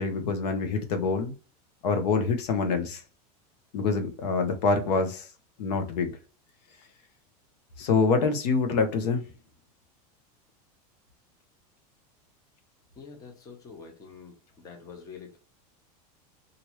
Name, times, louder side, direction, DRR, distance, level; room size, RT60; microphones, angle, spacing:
voice 1, 0.0-1.3 1.8-3.0 3.7-5.3 5.6-6.1 7.8-9.2, left 4 dB, 90° left, 0.9 m, -26 dB
voice 2, 13.0-15.4, left 5 dB, 15° left, 0.7 m, -46 dB
3.1 x 2.6 x 2.9 m
supercardioid pair, 165°, 20 cm